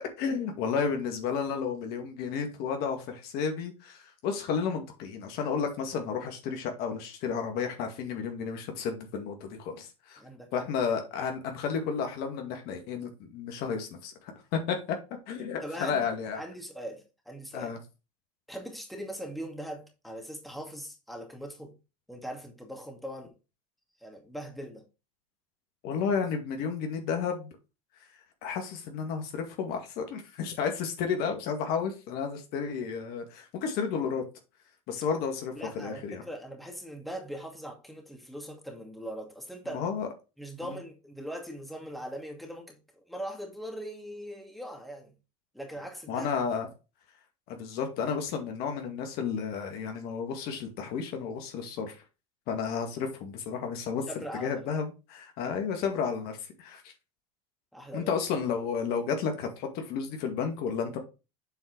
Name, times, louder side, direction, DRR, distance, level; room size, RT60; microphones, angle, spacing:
voice 1, 0.2-10.2 10.5-14.8 15.3-16.4 17.5-17.8 25.8-27.5 28.4-34.2 34.9-36.2 39.7-40.1 40.6-40.8 46.1-46.7 47.5-52.0 52.5-54.0 54.3-56.8 57.9-61.0, left 6 dB, 55° left, 2.2 m, -32 dB
voice 2, 10.2-10.5 15.6-16.1 16.4-17.7 18.5-21.8 22.1-23.3 24.0-24.8 35.6-39.8 40.4-45.1 45.5-46.3 54.1-54.6 57.7-58.1, equal, ahead, 2.2 m, -41 dB
7.9 x 4.6 x 4.6 m
supercardioid pair, 110°, 19 cm